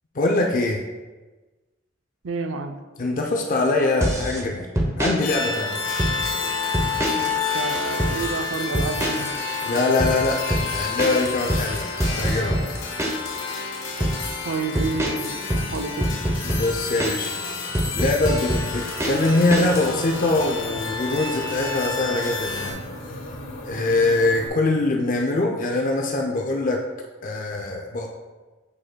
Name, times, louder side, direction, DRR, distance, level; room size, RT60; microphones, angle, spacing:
voice 1, 0.1-0.8 3.0-4.7 5.0-5.8 9.7-11.9 12.2-12.6 16.5-17.3 17.9-22.8 23.7-26.8 27.2-28.1, left 2 dB, 45° left, 1 dB, 0.5 m, -23 dB
voice 2, 2.2-2.8 7.1-9.5 14.4-16.1, right 4 dB, 75° right, 6 dB, 0.5 m, -30 dB
sound 1, 4.0-4.4 4.8-5.2 5.8-6.4 6.7-7.4 7.6-8.2 8.7-9.4 9.6-13.4 13.7-14.2 14.8-17.4 17.7-19.9, right 1 dB, 15° right, 0.7 m, -25 dB
sound 2, 5.2-22.7, left 4 dB, 85° left, 1.5 m, -30 dB
sound 3, 19.1-24.5, equal, 65° left, 1.1 m, -37 dB
8.3 x 5.1 x 2.2 m, 1.3 s
head